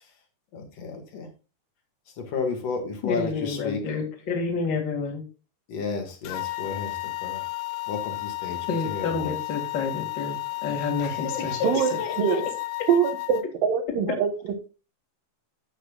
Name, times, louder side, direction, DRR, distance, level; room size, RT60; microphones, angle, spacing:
voice 1, 0.5-1.3 2.2-3.8 5.7-7.4 7.9-8.6 8.8-9.3 11.0-12.4, left 5 dB, 50° left, 2.7 m, -32 dB
voice 2, 3.0-5.2 8.7-11.6, left 4 dB, 35° left, 2.4 m, -29 dB
sound 1, 6.2-13.4, left 21 dB, 90° left, 2.4 m, -33 dB
voice 3, 11.6-12.4 12.9-14.3, right 7 dB, 80° right, 3.0 m, -23 dB
12.0 x 8.2 x 2.4 m
omnidirectional pair, 3.9 m